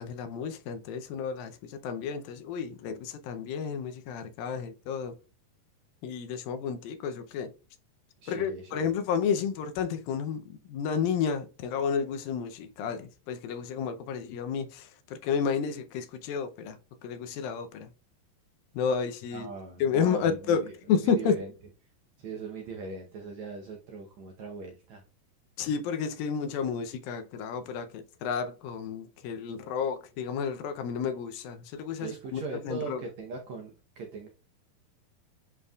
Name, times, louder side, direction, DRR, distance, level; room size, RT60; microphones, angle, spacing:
voice 1, 0.0-5.2 6.0-7.5 8.3-17.9 18.7-19.5 19.8-21.4 25.6-33.0, left 6 dB, 80° left, 2.4 m, -31 dB
voice 2, 8.2-8.9 19.3-20.7 21.0-21.5 22.2-25.0 32.0-34.3, right 4 dB, 70° right, 1.8 m, -40 dB
10.5 x 4.1 x 2.3 m
omnidirectional pair, 4.2 m